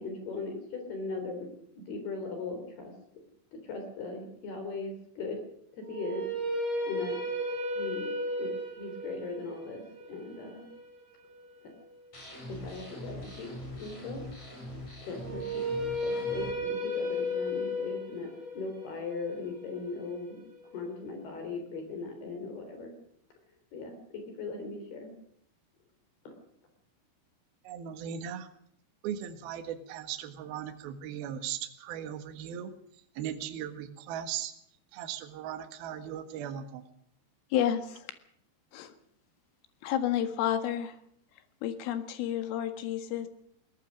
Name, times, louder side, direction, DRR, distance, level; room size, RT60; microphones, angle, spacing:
voice 1, 0.0-2.9 3.5-5.4 5.7-6.3 6.9-7.2 7.7-8.1 8.4-9.8 10.1-10.7 12.5-13.5 13.8-14.2 15.1-15.6 16.0-22.9 23.7-25.1 26.3-26.4, left 3 dB, 55° left, 5 dB, 5.2 m, -39 dB
sound 1, 5.8-11.9 15.2-21.3, left 1 dB, 35° right, 5.8 m, -35 dB
sound 2, 12.1-16.5, left 1 dB, 30° left, 7.3 m, -43 dB
voice 2, 27.6-28.5 29.0-32.7 33.2-34.5 34.9-36.8, right 9 dB, 60° right, 7 dB, 3.0 m, -38 dB
voice 3, 37.5-38.1 38.7-38.9 39.8-41.0 41.6-43.3, left 10 dB, 85° left, 9 dB, 4.3 m, -30 dB
22.0 x 18.5 x 6.4 m, 0.68 s
omnidirectional pair, 5.7 m